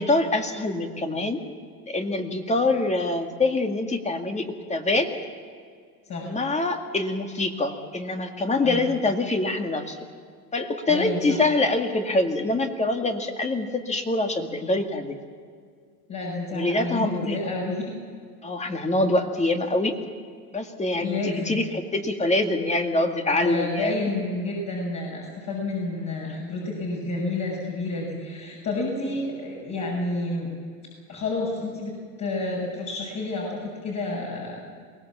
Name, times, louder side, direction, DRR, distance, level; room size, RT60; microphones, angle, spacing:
voice 1, 0.0-1.4 1.9-5.1 6.2-10.0 10.5-15.2 16.5-17.4 18.4-19.9 20.5-24.1, left 2 dB, 15° left, 5 dB, 2.0 m, -25 dB
voice 2, 10.9-11.4 16.1-17.9 21.0-21.6 23.4-30.5 31.1-34.6, left 2 dB, 40° left, -4 dB, 6.6 m, -30 dB
23.0 x 18.5 x 7.3 m, 2.1 s
supercardioid pair, 110°, 44 cm